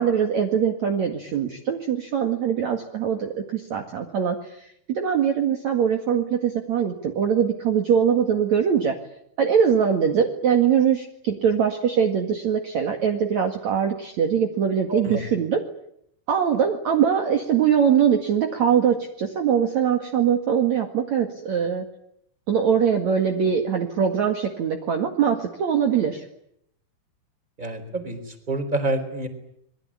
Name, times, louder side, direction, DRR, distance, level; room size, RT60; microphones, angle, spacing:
voice 1, 0.0-9.0 9.4-15.6 16.3-21.9 22.5-26.2, right 7 dB, 50° right, 4 dB, 2.9 m, -22 dB
voice 2, 14.9-15.2 27.6-29.3, right 1 dB, 10° right, 8 dB, 4.1 m, -27 dB
27.5 x 22.5 x 8.7 m, 0.73 s
omnidirectional pair, 4.7 m